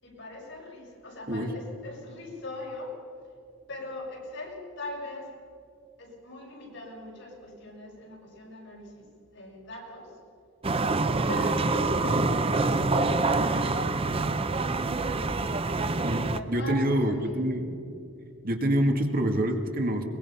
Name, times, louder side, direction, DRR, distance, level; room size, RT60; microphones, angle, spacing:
voice 1, 0.0-3.0 3.7-5.3 6.0-10.2 11.3-12.2 12.5-14.2 16.3-17.4, left 1 dB, 65° left, -3 dB, 6.3 m, -40 dB
sound 1, 10.6-16.4, right 3 dB, 30° right, 0.7 m, -26 dB
voice 2, 16.0-17.7 18.4-20.0, right 1 dB, 50° right, 4 dB, 1.9 m, -26 dB
22.5 x 21.5 x 5.6 m, 2.4 s
head